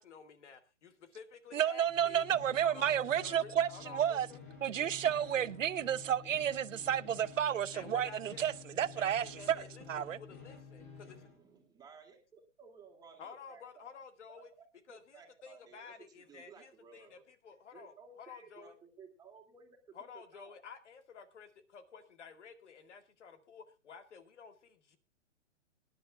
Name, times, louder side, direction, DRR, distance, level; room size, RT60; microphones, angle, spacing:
voice 1, 0.0-2.3 2.6-4.4 7.7-8.5 9.0-11.2 13.2-14.5 14.9-18.8 19.9-25.0, left 6 dB, 65° left, 2.0 m, -52 dB
voice 2, 1.5-4.3 4.6-10.2, right 9 dB, 85° right, 0.7 m, -31 dB
sound 1, 1.8-11.4, left 5 dB, 40° left, 5.7 m, -52 dB
voice 3, 11.1-13.9 14.4-14.5 14.9-17.1 17.7-20.6, right 5 dB, 10° right, 2.6 m, -57 dB
24.0 x 10.5 x 2.4 m
hypercardioid pair, 140°, 37 cm